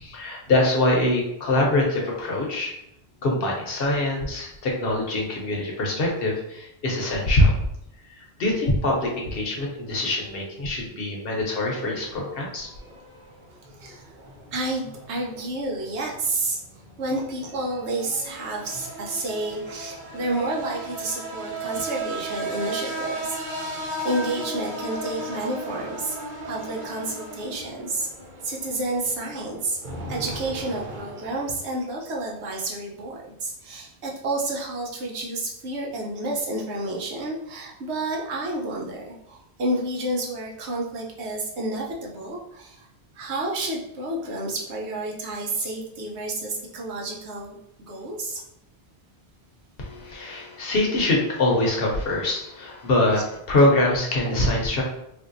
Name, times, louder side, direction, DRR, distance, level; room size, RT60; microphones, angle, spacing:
voice 1, 0.0-2.7 3.2-7.5 8.1-12.7 49.8-53.2 53.5-54.8, left 1 dB, 60° left, -1 dB, 0.9 m, -23 dB
sound 1, 11.8-31.6, right 1 dB, 55° right, 0.7 m, -36 dB
voice 2, 13.8-14.1 14.5-16.6 17.0-26.2 26.4-28.1 28.4-29.8 30.1-42.9 43.1-47.5 47.9-48.4 50.3-50.5 54.3-54.4, right 2 dB, 80° right, -2 dB, 1.0 m, -30 dB
3.4 x 2.6 x 2.5 m, 0.81 s
omnidirectional pair, 1.1 m